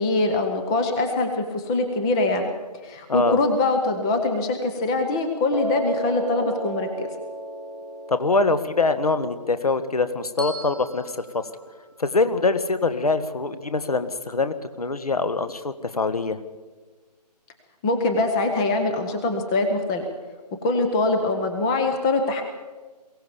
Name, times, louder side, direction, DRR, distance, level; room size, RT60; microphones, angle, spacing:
voice 1, 0.0-2.5 2.8-7.1 17.8-20.0 20.6-22.4, left 2 dB, 10° left, 6 dB, 0.6 m, -23 dB
Piano, 5.5-11.7, right 1 dB, 90° left, 5.0 m, -35 dB
voice 2, 8.1-11.4 12.0-16.4, left 3 dB, 60° left, 11 dB, 1.6 m, -24 dB
Bell, 10.4-12.6, left 1 dB, 40° left, 3.7 m, -41 dB
22.5 x 16.5 x 7.1 m, 1.3 s
figure-of-eight pair, 150°, 21 cm